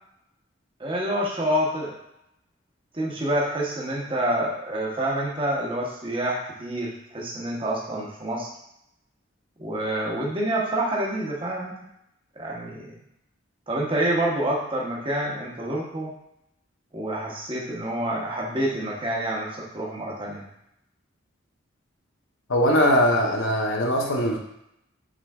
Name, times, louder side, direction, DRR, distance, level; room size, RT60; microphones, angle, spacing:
voice 1, 0.8-1.9 2.9-8.5 9.6-11.7 12.4-13.0 13.7-16.1 16.9-20.4, right 1 dB, 25° right, -3 dB, 0.8 m, -27 dB
voice 2, 22.5-24.4, equal, 70° left, 1 dB, 0.7 m, -21 dB
6.0 x 3.1 x 2.3 m, 0.81 s
head